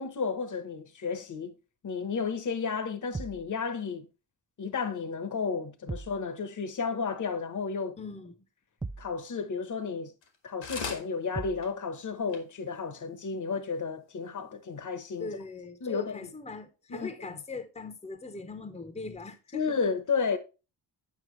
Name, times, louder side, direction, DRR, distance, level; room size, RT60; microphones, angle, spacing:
voice 1, 0.0-1.5 1.8-4.1 4.6-8.0 9.0-10.1 10.4-15.3 15.8-16.3 16.9-17.4 19.5-20.4, left 5 dB, 45° left, 1.0 m, -32 dB
sound 1, 3.1-3.5 5.9-6.2 8.8-9.2 11.3-11.7, right 3 dB, 10° right, 0.3 m, -38 dB
voice 2, 8.0-8.3 15.2-19.8, left 3 dB, 15° left, 0.9 m, -41 dB
sound 2, 10.2-10.4 10.6-11.1 11.6-11.7 12.0-12.1 12.3-12.4 13.0-13.1, left 5 dB, 85° left, 1.9 m, -37 dB
9.4 x 5.7 x 3.1 m
wide cardioid pair, 130°, 44 cm